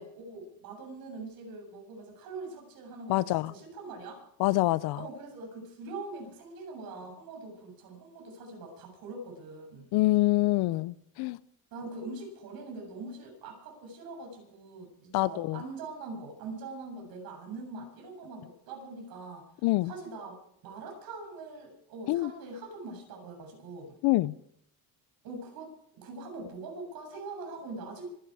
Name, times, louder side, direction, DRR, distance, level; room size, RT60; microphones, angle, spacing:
voice 1, 0.0-4.2 4.9-9.9 11.7-19.5 19.8-20.4 20.6-24.0 25.2-28.1, right 3 dB, 65° right, 7.7 m, -43 dB
voice 2, 3.1-3.5 4.4-5.1 9.9-11.4 15.1-15.6 19.6-19.9 22.1-22.3 24.0-24.3, left 19 dB, 75° left, 0.7 m, -26 dB
25.5 x 11.5 x 4.9 m
cardioid pair, 160°, 38 cm